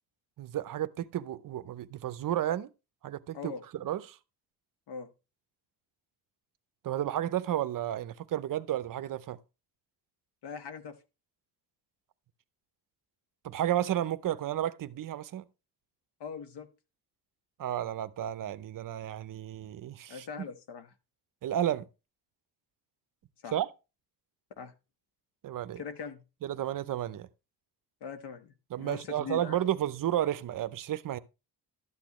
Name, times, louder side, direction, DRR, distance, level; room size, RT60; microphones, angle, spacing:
voice 1, 0.4-2.7 3.0-4.2 6.8-9.4 13.4-15.4 17.6-20.3 21.4-21.9 23.5-23.7 25.4-25.8 26.4-27.3 28.7-31.2, right 12 dB, 55° right, 0.7 m, -32 dB
voice 2, 10.4-11.0 16.2-16.7 20.1-20.9 23.4-23.6 24.6-24.7 25.8-26.2 28.0-29.6, left 6 dB, 80° left, 1.4 m, -41 dB
12.5 x 8.5 x 3.1 m
cardioid pair, 140°, 40 cm